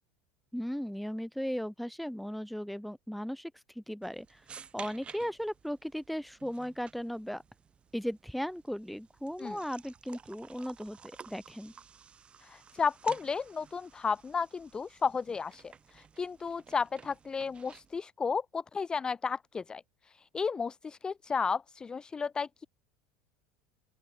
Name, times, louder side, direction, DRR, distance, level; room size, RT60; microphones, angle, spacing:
voice 1, 0.5-4.4 4.7-7.4 7.9-11.7, equal, ahead, 1.6 m, -37 dB
sound 1, 4.0-18.0, right 6 dB, 25° right, 3.5 m, -54 dB
voice 2, 12.4-19.8 20.3-22.7, left 5 dB, 20° left, 0.7 m, -33 dB
open air
supercardioid pair, 130°, 5 cm